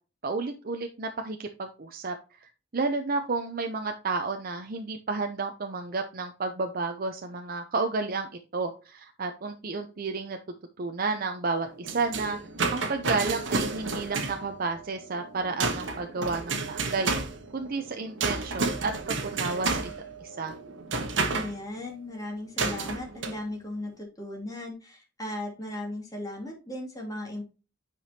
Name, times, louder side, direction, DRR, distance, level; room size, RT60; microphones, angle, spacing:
voice 1, 0.2-2.1 2.4-10.4 10.8-12.4 12.7-17.1 17.5-19.9 20.2-20.5, right 3 dB, 50° right, 5 dB, 0.7 m, -31 dB
sound 1, 11.6-21.5 22.6-23.4, right 3 dB, 75° right, 1.2 m, -31 dB
voice 2, 21.3-27.4, left 1 dB, 20° left, -1 dB, 2.5 m, -37 dB
9.2 x 5.1 x 2.8 m, 0.33 s
head